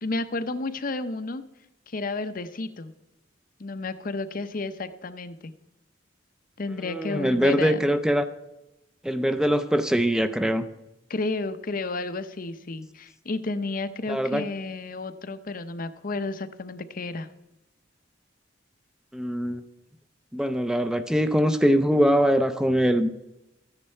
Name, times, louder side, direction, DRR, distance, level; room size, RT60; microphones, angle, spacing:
voice 1, 0.0-1.4 1.9-2.9 3.6-5.5 6.6-7.9 11.1-17.3, left 3 dB, 50° left, 12 dB, 0.7 m, -32 dB
voice 2, 6.8-8.3 9.0-10.7 14.1-14.4 19.1-19.6 20.3-23.1, equal, 5° right, 10 dB, 0.5 m, -22 dB
14.0 x 9.8 x 4.4 m, 0.94 s
head